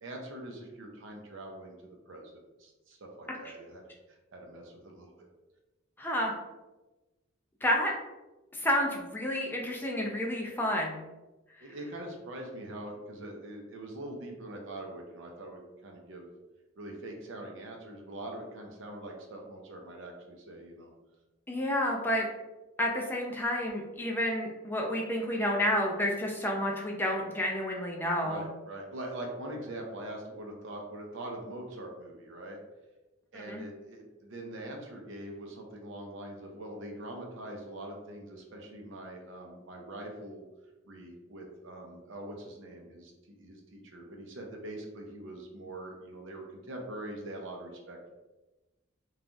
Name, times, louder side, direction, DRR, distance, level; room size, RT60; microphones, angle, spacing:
voice 1, 0.0-3.8 4.1-5.3 11.6-16.3 16.8-20.9 28.2-32.6 33.3-40.4 40.8-48.1, right 1 dB, 70° right, 1 dB, 0.6 m, -43 dB
voice 2, 6.0-6.3 7.6-7.9 8.5-11.0 21.5-22.3 22.8-28.4 33.5-33.6, left 1 dB, 10° left, 0 dB, 0.4 m, -30 dB
3.2 x 2.3 x 2.5 m, 1.1 s
head